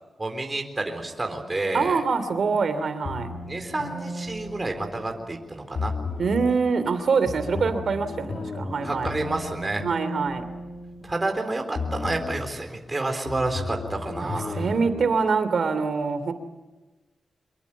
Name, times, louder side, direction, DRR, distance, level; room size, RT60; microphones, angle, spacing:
voice 1, 0.2-2.0 3.4-5.9 8.8-9.8 11.0-14.7, right 2 dB, 25° right, 4 dB, 4.0 m, -29 dB
voice 2, 1.7-3.3 6.2-9.2 9.8-10.4 14.2-16.3, right 5 dB, 65° right, 11 dB, 2.9 m, -24 dB
sound 1, 3.0-5.3 5.7-6.6 7.3-11.4 11.7-12.6 13.3-15.0, left 3 dB, 55° left, 2.4 m, -34 dB
25.0 x 22.5 x 8.5 m, 1.1 s
wide cardioid pair, 100°, 0 cm